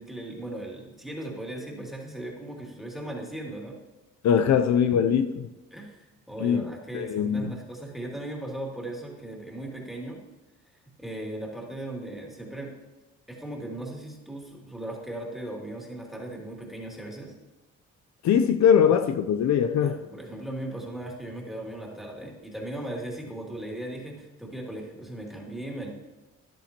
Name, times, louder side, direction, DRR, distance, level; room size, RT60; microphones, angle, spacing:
voice 1, 0.0-3.8 5.7-10.2 11.0-12.7 13.3-17.3 19.8-25.9, right 1 dB, ahead, 2.8 m, -37 dB
voice 2, 4.2-5.4 6.4-6.6 6.9-7.6 18.2-20.0, left 8 dB, 65° left, 0.6 m, -21 dB
13.5 x 10.0 x 2.9 m
cardioid pair, 90°, 30 cm